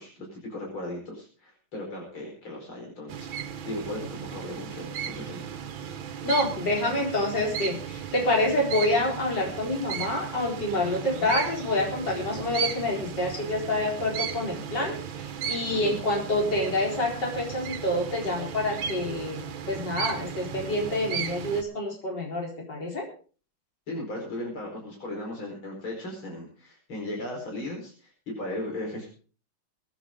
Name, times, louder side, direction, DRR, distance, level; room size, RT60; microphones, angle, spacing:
voice 1, 0.0-5.4 11.1-11.3 15.7-16.0 23.9-29.1, left 1 dB, 85° left, 0 dB, 5.6 m, -37 dB
sound 1, 3.1-21.6, right 7 dB, 70° right, 1.9 m, -35 dB
voice 2, 6.2-23.1, left 1 dB, 60° left, 0 dB, 4.9 m, -27 dB
22.0 x 10.0 x 3.7 m, 0.38 s
omnidirectional pair, 2.2 m